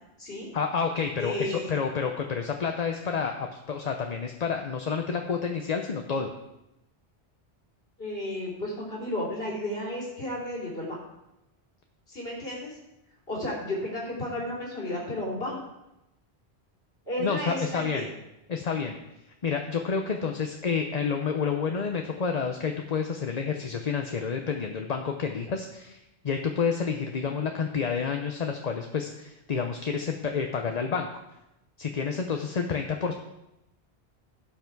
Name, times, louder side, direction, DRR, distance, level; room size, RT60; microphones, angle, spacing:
voice 1, 0.5-6.3 17.2-18.1 18.5-19.0 19.4-31.1 31.8-33.1, left 5 dB, 40° left, 4 dB, 0.7 m, -29 dB
voice 2, 1.2-1.7 8.0-11.0 12.1-12.8 13.3-15.6 17.1-18.1, left 1 dB, 60° left, -5 dB, 3.4 m, -33 dB
16.5 x 5.8 x 4.6 m, 0.91 s
omnidirectional pair, 1.1 m